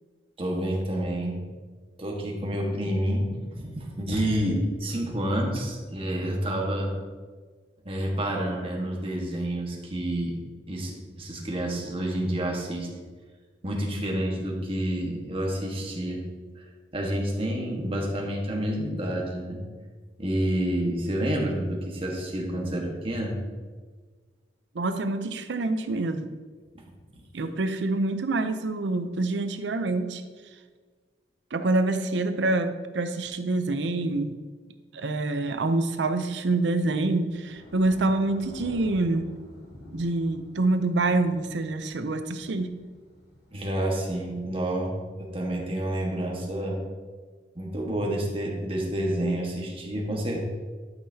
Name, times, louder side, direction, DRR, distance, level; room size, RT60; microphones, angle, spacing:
voice 1, 0.4-1.4 2.0-6.9 7.8-10.4 10.7-12.9 13.6-16.2 16.9-19.6 20.2-23.4 43.5-46.8 47.5-50.4, right 1 dB, 30° right, -1 dB, 1.5 m, -29 dB
voice 2, 24.7-26.3 27.3-30.2 31.5-34.4 34.9-39.3 39.9-42.7, right 2 dB, 80° right, 9 dB, 0.6 m, -26 dB
Thunder / Rain, 36.1-44.3, left 1 dB, 65° left, 2.4 m, -49 dB
12.0 x 5.7 x 2.8 m, 1.5 s
head